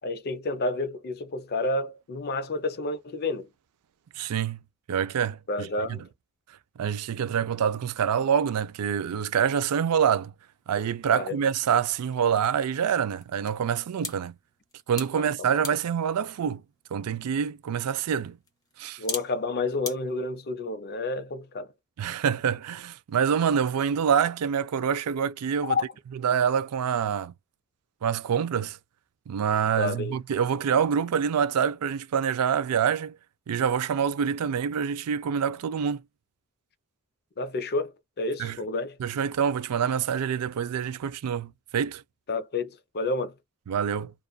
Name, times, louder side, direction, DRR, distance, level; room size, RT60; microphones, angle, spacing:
voice 1, 0.0-3.5 5.5-6.1 11.1-11.4 15.2-15.8 19.0-21.7 25.6-25.9 29.8-30.1 37.4-39.0 42.3-43.3, left 3 dB, 45° left, 0.6 m, -30 dB
voice 2, 4.2-4.6 4.9-6.1 6.8-10.3 10.7-14.4 14.9-16.6 16.9-18.4 18.8-19.0 22.0-25.7 26.2-27.3 28.0-28.8 29.3-33.2 33.5-36.0 38.4-38.6 39.0-42.0 43.7-44.1, right 7 dB, 90° right, 0.4 m, -26 dB
sound 1, 10.6-20.0, left 3 dB, 15° left, 0.9 m, -44 dB
2.4 x 2.4 x 2.2 m
head